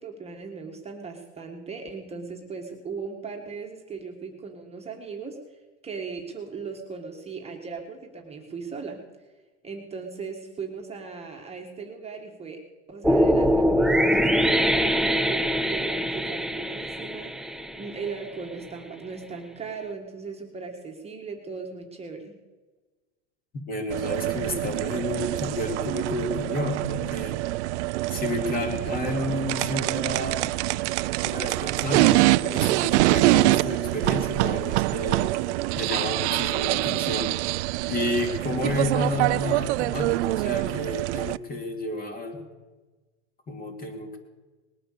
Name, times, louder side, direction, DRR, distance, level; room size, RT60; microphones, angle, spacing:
voice 1, 0.0-9.0 9.6-12.6 12.9-22.3, right 5 dB, 15° right, 1 dB, 1.6 m, -38 dB
sound 1, 13.0-18.2, equal, ahead, 0.4 m, -23 dB
voice 2, 23.7-27.4 28.1-30.6 31.2-35.3 35.8-37.4 37.9-42.4 43.5-44.2, left 1 dB, 25° left, 4 dB, 2.6 m, -31 dB
sound 2, 23.9-41.4, right 18 dB, 70° right, 0.5 m, -25 dB
20.0 x 8.9 x 6.7 m, 1.3 s
supercardioid pair, 125°, 36 cm